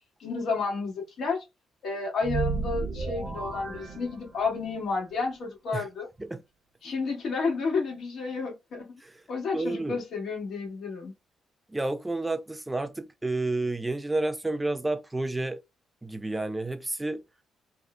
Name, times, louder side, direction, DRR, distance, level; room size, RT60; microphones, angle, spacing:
voice 1, 0.2-1.4 1.8-6.1 6.8-9.0 9.3-11.1, left 4 dB, 65° left, 1.3 m, -31 dB
sound 1, 2.2-4.8, right 3 dB, 50° right, 0.8 m, -33 dB
voice 2, 9.5-10.0 11.7-15.6 16.0-17.2, right 2 dB, 15° right, 0.3 m, -30 dB
3.0 x 2.0 x 2.4 m
cardioid pair, 90°, 0 cm